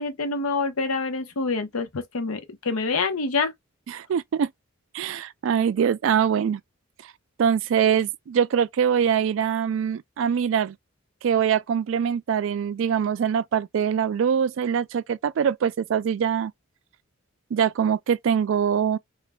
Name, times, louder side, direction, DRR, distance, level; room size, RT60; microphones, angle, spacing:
voice 1, 0.0-3.5, left 4 dB, 90° left, 0.8 m, -26 dB
voice 2, 3.9-4.5 4.9-6.6 7.4-10.8 11.2-16.5 17.5-19.0, right 8 dB, 65° right, 0.3 m, -23 dB
3.3 x 2.5 x 2.2 m
head